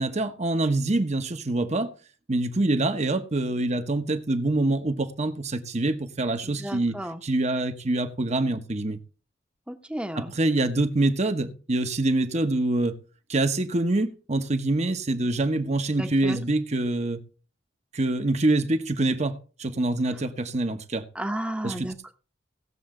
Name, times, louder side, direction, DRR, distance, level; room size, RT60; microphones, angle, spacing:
voice 1, 0.0-1.9 2.3-7.0 7.2-9.0 10.2-13.0 13.3-17.2 17.9-21.0 21.6-21.9, right 2 dB, 40° right, 1.2 m, -25 dB
voice 2, 6.4-7.2 9.7-10.3 16.0-16.4 21.1-22.1, right 1 dB, 5° right, 1.0 m, -33 dB
18.0 x 7.1 x 3.8 m
head